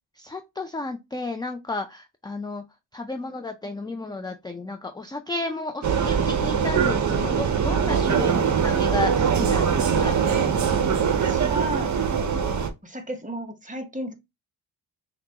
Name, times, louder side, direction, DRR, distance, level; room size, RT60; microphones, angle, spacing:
voice 1, 0.2-2.6 2.9-10.2, left 2 dB, 10° left, 0.3 m, -32 dB
Vehicle, 5.8-12.7, right 7 dB, 40° right, 0.8 m, -22 dB
voice 2, 8.2-8.5 11.1-12.0 12.8-14.1, right 1 dB, 15° right, 1.0 m, -33 dB
5.8 x 2.4 x 2.8 m
cardioid pair, 100°, 46 cm